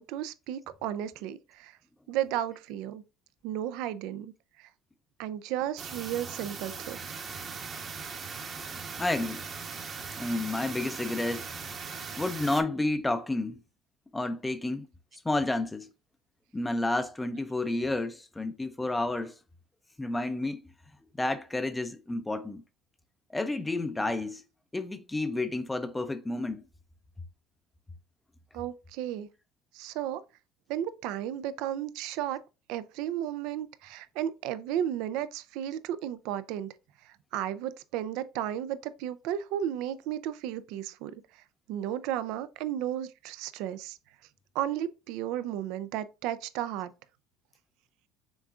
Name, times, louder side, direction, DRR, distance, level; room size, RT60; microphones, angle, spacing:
voice 1, 0.0-1.7 2.1-3.0 3.4-4.3 4.6-4.7 5.2-7.0 28.5-29.3 29.7-30.2 30.7-32.4 32.7-36.7 37.0-41.1 41.7-44.0 44.5-46.9, right 11 dB, 70° right, 0.4 m, -34 dB
sound 1, 5.8-12.6, right 5 dB, 40° right, 1.0 m, -39 dB
voice 2, 8.7-9.5 10.2-11.5 12.2-13.6 14.1-14.9 15.2-15.9 16.5-19.4 20.0-20.6 21.2-22.6 23.3-24.4 24.7-26.6, left 2 dB, 15° left, 0.5 m, -30 dB
6.0 x 3.6 x 2.4 m
supercardioid pair, 85°, 0 cm